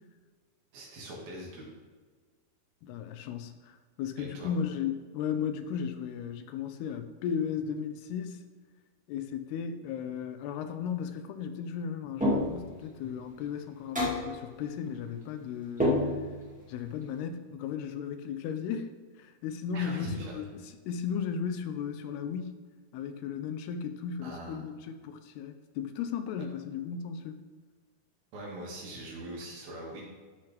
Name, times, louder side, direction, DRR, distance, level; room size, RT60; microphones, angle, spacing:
voice 1, 0.7-1.7 4.2-4.5 19.7-20.4 24.2-24.6 28.3-30.1, right 1 dB, 70° right, -3 dB, 4.0 m, -41 dB
voice 2, 2.8-8.4 9.1-16.1 16.7-18.9 19.2-22.6 22.9-27.4, left 7 dB, 90° left, 9 dB, 2.8 m, -35 dB
sound 1, 12.2-12.8 13.9-14.4 15.8-16.5, left 1 dB, 5° right, 1.0 m, -28 dB
13.5 x 6.7 x 3.5 m, 1.5 s
omnidirectional pair, 4.5 m